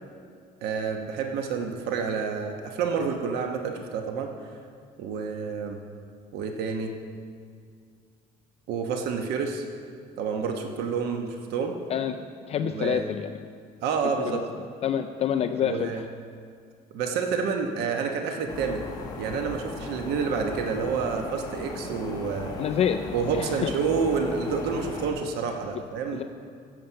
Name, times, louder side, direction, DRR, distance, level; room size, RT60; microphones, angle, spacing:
voice 1, 0.6-4.3 5.0-5.8 6.3-6.9 8.7-9.7 10.2-11.8 12.6-13.1 13.8-14.4 15.6-16.0 16.9-18.9 19.2-22.6 23.1-26.2, right 5 dB, 90° right, 4 dB, 1.1 m, -29 dB
voice 2, 11.9-13.3 14.3-14.4 14.8-15.9 22.6-23.1 23.3-23.7, left 9 dB, 40° left, 7 dB, 0.4 m, -27 dB
sound 1, 18.5-25.1, left 3 dB, 25° left, 1.7 m, -37 dB
15.5 x 7.7 x 5.7 m, 2.2 s
cardioid pair, 160°, 16 cm